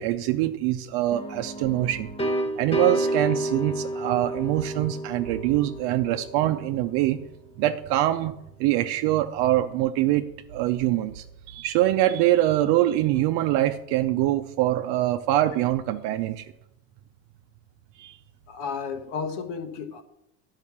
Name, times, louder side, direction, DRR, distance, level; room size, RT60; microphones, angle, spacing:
voice 1, 0.0-2.1 2.6-7.2 7.6-8.3 8.6-16.5 18.0-18.2, right 14 dB, 60° right, 0.7 m, -24 dB
sound 1, 1.1-6.8, right 1 dB, 15° left, 0.9 m, -30 dB
voice 2, 18.5-20.0, left 5 dB, 60° left, 1.5 m, -32 dB
10.5 x 5.7 x 7.2 m
supercardioid pair, 110°, 45 cm